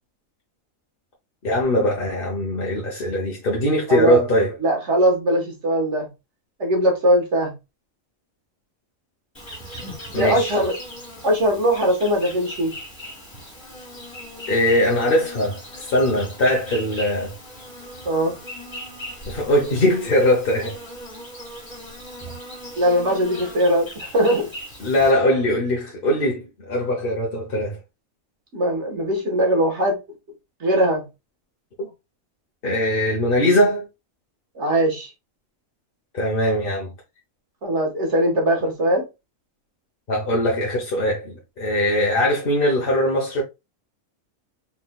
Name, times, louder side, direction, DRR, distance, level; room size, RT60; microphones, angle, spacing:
voice 1, 1.4-4.5 10.1-10.5 14.5-17.3 19.3-20.8 24.8-27.8 31.8-31.9 32.6-33.9 36.1-36.9 40.1-43.4, left 1 dB, 45° left, 1.1 m, -21 dB
voice 2, 3.9-4.2 4.6-6.1 6.6-7.5 10.2-10.8 11.2-12.7 18.1-18.4 22.8-24.5 28.5-30.0 30.6-31.0 34.6-35.1 37.6-39.0, right 1 dB, 60° right, 1.7 m, -20 dB
Insect, 9.3-25.1, equal, 20° left, 2.2 m, -38 dB
4.3 x 3.9 x 2.2 m
omnidirectional pair, 1.4 m